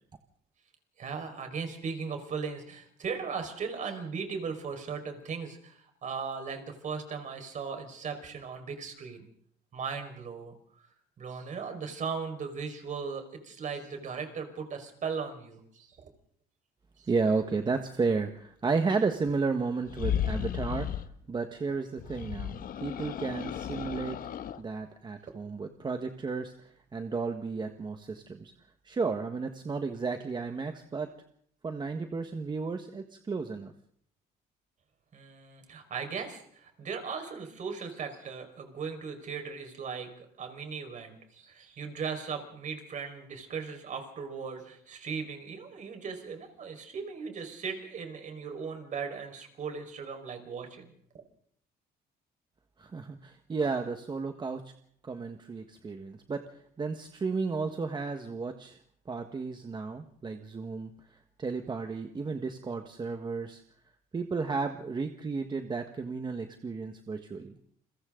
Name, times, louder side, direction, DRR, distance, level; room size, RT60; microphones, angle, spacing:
voice 1, 1.0-9.2 9.7-10.5 11.2-16.0 17.0-17.1 35.1-50.8, right 5 dB, 45° right, 5 dB, 5.1 m, -38 dB
voice 2, 17.1-20.9 21.3-24.2 24.6-28.5 28.8-31.1 31.6-33.7 52.8-54.6 55.0-58.8 59.1-63.6 64.1-67.6, right 4 dB, 25° right, 6 dB, 1.5 m, -33 dB
sound 1, 19.9-21.1 22.0-24.6, left 9 dB, 55° left, 1.2 m, -34 dB
29.5 x 23.0 x 3.9 m, 0.64 s
cardioid pair, 110°, 17 cm